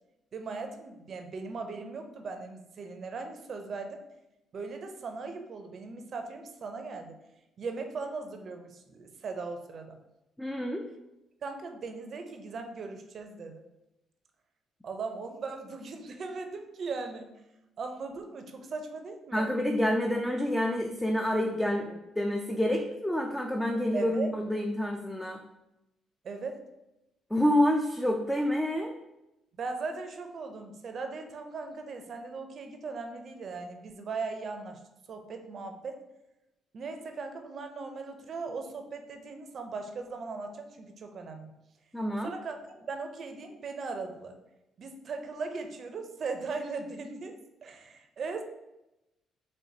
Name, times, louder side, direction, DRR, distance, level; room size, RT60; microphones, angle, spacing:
voice 1, 0.3-4.0 4.5-7.2 7.6-10.0 11.4-13.6 14.8-17.3 17.8-19.5 23.9-24.3 26.2-26.6 29.6-34.8 35.1-36.0 36.7-41.5 42.2-44.4 44.8-47.4 47.6-48.4, right 4 dB, 55° right, 6 dB, 0.6 m, -38 dB
voice 2, 10.4-10.8 19.3-25.4 27.3-28.9 41.9-42.3, left 1 dB, 5° left, 2 dB, 0.4 m, -28 dB
4.4 x 3.1 x 2.8 m, 0.92 s
supercardioid pair, 65°, 0 cm